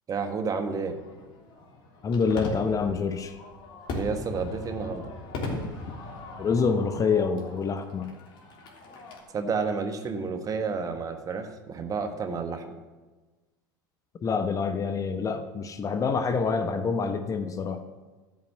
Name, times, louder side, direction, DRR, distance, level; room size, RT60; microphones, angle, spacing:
voice 1, 0.1-1.0 3.9-5.1 9.3-12.8, right 5 dB, 30° right, 6 dB, 1.4 m, -30 dB
Fireworks, 0.9-9.2, left 2 dB, 50° left, 3.1 m, -39 dB
voice 2, 2.0-3.4 5.5-5.6 6.4-8.1 14.2-17.8, left 5 dB, 30° left, 9 dB, 1.0 m, -26 dB
13.0 x 6.1 x 7.8 m, 1.3 s
hypercardioid pair, 80°, 11 cm